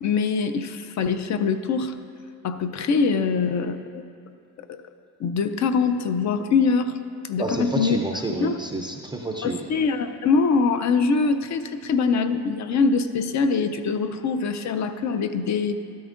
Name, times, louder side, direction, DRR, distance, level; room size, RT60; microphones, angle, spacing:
voice 1, 0.0-2.0 2.4-4.0 4.7-4.8 5.2-7.0 7.2-8.0 8.4-8.6 9.4-15.7, left 5 dB, 45° left, 9 dB, 0.5 m, -23 dB
voice 2, 7.4-9.6, right 2 dB, 10° right, 1 dB, 0.4 m, -29 dB
13.0 x 12.5 x 2.5 m, 2.4 s
cardioid pair, 165°, 40 cm